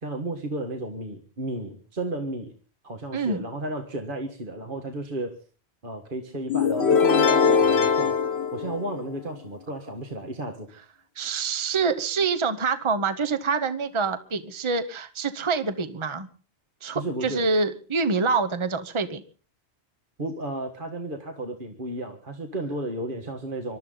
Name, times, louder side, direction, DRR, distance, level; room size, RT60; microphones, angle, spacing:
voice 1, 0.0-2.5 2.8-5.4 5.8-8.2 8.5-10.7 16.9-17.5 20.2-23.8, right 1 dB, 50° right, 3 dB, 1.9 m, -33 dB
voice 2, 3.1-3.4 11.2-16.3 16.8-19.2, right 4 dB, 30° right, 9 dB, 1.0 m, -26 dB
sound 1, 6.5-9.3, left 6 dB, 80° left, 1.6 m, -21 dB
26.5 x 13.0 x 3.9 m, 0.38 s
omnidirectional pair, 1.1 m